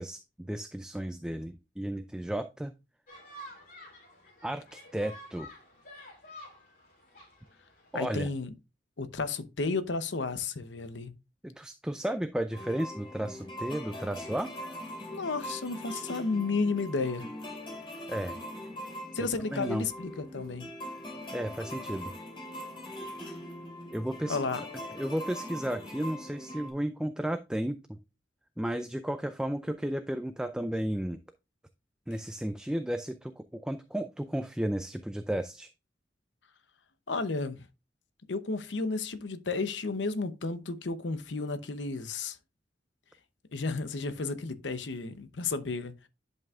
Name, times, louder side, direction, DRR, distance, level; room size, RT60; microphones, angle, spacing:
voice 1, 0.0-2.7 4.4-5.5 7.9-8.3 11.4-14.5 18.1-18.4 19.5-19.8 21.3-22.1 23.9-24.4 24.9-28.0 28.6-31.2 32.1-35.7, right 1 dB, 5° right, 0.3 m, -33 dB
sound 1, 3.1-8.1, equal, 50° left, 2.7 m, -50 dB
voice 2, 7.9-8.5 9.0-11.1 15.1-17.2 19.1-20.7 24.3-24.6 37.1-37.6 38.3-42.4 43.5-45.9, left 3 dB, 85° left, 0.8 m, -32 dB
sound 2, 12.5-26.7, equal, 30° left, 2.4 m, -42 dB
11.0 x 5.4 x 2.4 m
head